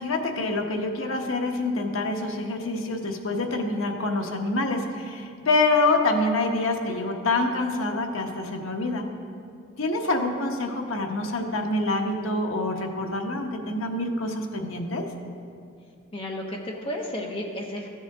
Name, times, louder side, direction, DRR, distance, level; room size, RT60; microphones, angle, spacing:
voice 1, 0.0-9.0 9.7-15.1, left 2 dB, 85° left, 3 dB, 1.0 m, -26 dB
voice 2, 16.1-17.9, left 1 dB, 25° left, 0 dB, 1.1 m, -32 dB
14.0 x 7.7 x 3.5 m, 2.4 s
head